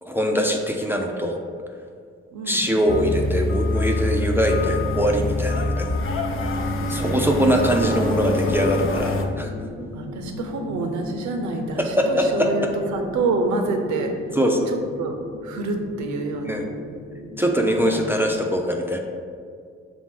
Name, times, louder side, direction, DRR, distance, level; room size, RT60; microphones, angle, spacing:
voice 1, 0.0-1.4 2.5-6.0 6.9-9.5 11.8-12.5 14.3-14.8 16.4-16.7 17.4-19.0, equal, 5° right, 2 dB, 0.4 m, -22 dB
voice 2, 2.3-2.6 6.9-7.5 7.9-8.0 9.9-12.7 12.9-14.4 14.7-15.2 15.4-16.7 17.8-18.1, right 3 dB, 70° right, 4 dB, 0.6 m, -27 dB
sound 1, 2.9-9.3, left 2 dB, 45° left, 0.5 m, -25 dB
sound 2, 7.6-18.3, left 1 dB, 65° left, 1.1 m, -38 dB
5.8 x 2.0 x 3.7 m, 2.1 s
hypercardioid pair, 40°, 30 cm